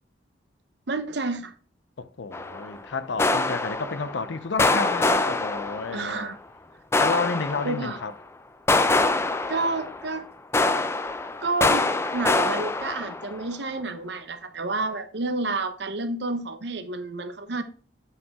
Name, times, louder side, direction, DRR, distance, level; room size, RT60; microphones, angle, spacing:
voice 1, 0.9-1.5 5.9-6.4 7.6-8.0 9.5-10.2 11.4-17.6, right 3 dB, 65° right, 0.9 m, -30 dB
voice 2, 2.0-6.3 7.0-8.1, left 4 dB, 80° left, 0.6 m, -31 dB
sound 1, 2.3-2.8 3.2-4.3 4.6-6.2 6.9-8.1 8.7-10.2 10.5-13.4, left 2 dB, 15° left, 0.4 m, -25 dB
8.0 x 5.5 x 3.5 m
head